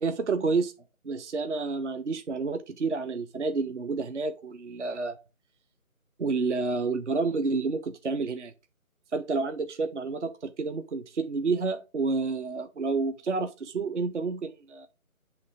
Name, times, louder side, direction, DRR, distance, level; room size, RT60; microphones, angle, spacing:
voice 1, 0.0-0.7 1.0-5.2 6.2-8.5 9.1-14.9, right 4 dB, 55° right, 0.6 m, -29 dB
7.9 x 3.2 x 4.9 m
figure-of-eight pair, 165°, 43 cm